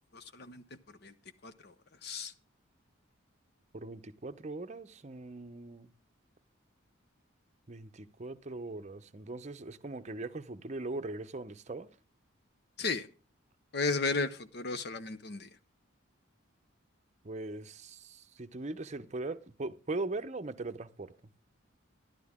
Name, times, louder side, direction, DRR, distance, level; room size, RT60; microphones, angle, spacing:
voice 1, 0.1-0.6 1.0-1.1 1.4-1.7 2.0-2.3 12.8-13.1 13.7-15.5, left 3 dB, 50° left, 0.8 m, -34 dB
voice 2, 3.7-5.9 7.7-11.9 17.2-21.1, right 2 dB, 35° right, 0.7 m, -40 dB
12.0 x 11.5 x 3.6 m
head